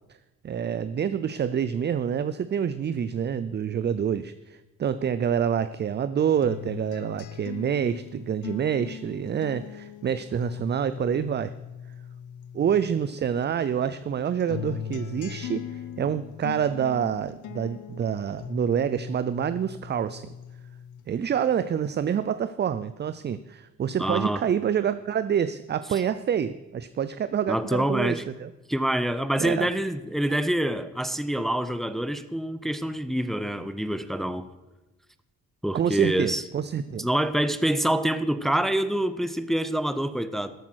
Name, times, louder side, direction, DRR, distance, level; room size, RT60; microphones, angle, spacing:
voice 1, 0.4-11.5 12.5-20.3 21.1-28.5 29.4-29.7 35.7-37.1, right 8 dB, 35° right, 14 dB, 0.5 m, -27 dB
sound 1, 6.4-13.1 13.4-21.1 21.5-22.4, left 9 dB, 80° left, 0.9 m, -40 dB
voice 2, 24.0-24.4 27.5-28.2 28.7-34.5 35.6-36.4 37.0-40.5, right 1 dB, ahead, 13 dB, 0.7 m, -26 dB
13.5 x 8.3 x 6.3 m, 1.1 s
cardioid pair, 90°, 30 cm